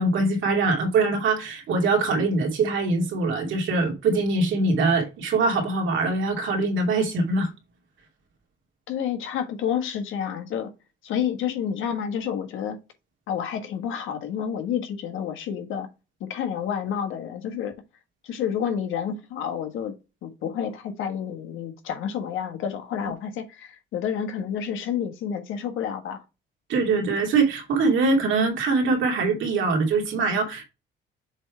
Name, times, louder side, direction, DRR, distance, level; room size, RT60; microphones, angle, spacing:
voice 1, 0.0-7.5 26.7-30.7, right 3 dB, 75° right, 2.5 m, -23 dB
voice 2, 8.9-10.7 11.0-12.8 13.3-15.9 16.2-17.7 18.2-19.9 20.2-26.2, left 8 dB, 85° left, 1.4 m, -29 dB
7.2 x 3.4 x 4.8 m
cardioid pair, 90°, 20 cm